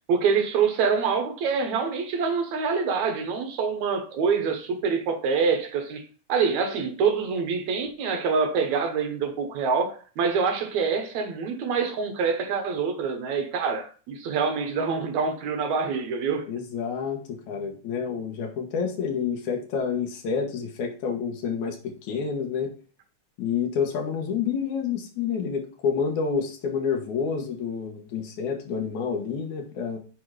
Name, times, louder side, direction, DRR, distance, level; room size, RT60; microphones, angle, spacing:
voice 1, 0.1-6.0 6.3-16.5, right 5 dB, 70° right, 2.2 m, -25 dB
voice 2, 16.5-22.7 23.4-30.0, left 6 dB, 70° left, 2.7 m, -29 dB
7.1 x 4.6 x 4.9 m
omnidirectional pair, 3.6 m